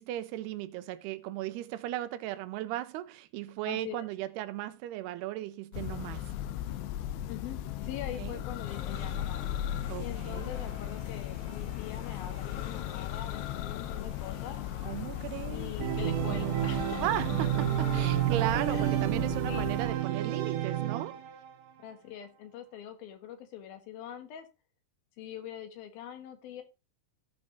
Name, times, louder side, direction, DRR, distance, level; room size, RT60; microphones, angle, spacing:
voice 1, 0.0-6.3 8.2-8.4 9.9-10.5 14.8-15.7 17.0-21.2, right 14 dB, 85° right, 2.8 m, -36 dB
voice 2, 3.6-4.0 7.2-9.4 10.0-14.6 15.5-17.0 18.7-19.0 19.5-19.7 21.8-24.5 25.2-26.6, left 10 dB, 70° left, 3.2 m, -43 dB
Church bell, 5.7-20.0, left 12 dB, 85° left, 2.9 m, -37 dB
sound 1, 8.6-18.7, left 5 dB, 50° left, 3.3 m, -49 dB
Organ, 15.8-21.5, right 14 dB, 70° right, 2.2 m, -30 dB
15.5 x 5.3 x 3.9 m
omnidirectional pair, 4.7 m